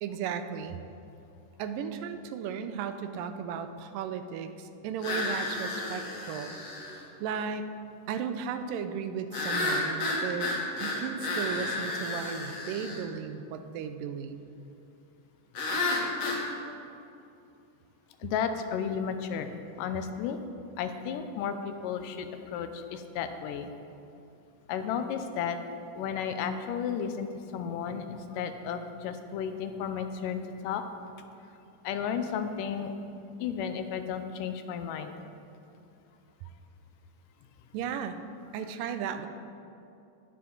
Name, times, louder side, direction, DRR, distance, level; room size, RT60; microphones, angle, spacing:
voice 1, 0.0-0.8 1.6-6.6 7.2-7.7 8.1-10.5 10.8-14.4 37.7-38.2 38.5-39.3, right 7 dB, 90° right, 9 dB, 2.2 m, -35 dB
sound 1, 5.0-7.0 9.3-13.0 15.5-16.4, left 2 dB, 55° left, 2.3 m, -31 dB
voice 2, 18.2-20.4 20.8-23.7 24.7-25.6 26.0-30.8 31.8-32.9 33.4-35.1, left 7 dB, 80° left, 8 dB, 2.2 m, -33 dB
19.5 x 6.5 x 3.9 m, 2.6 s
omnidirectional pair, 3.9 m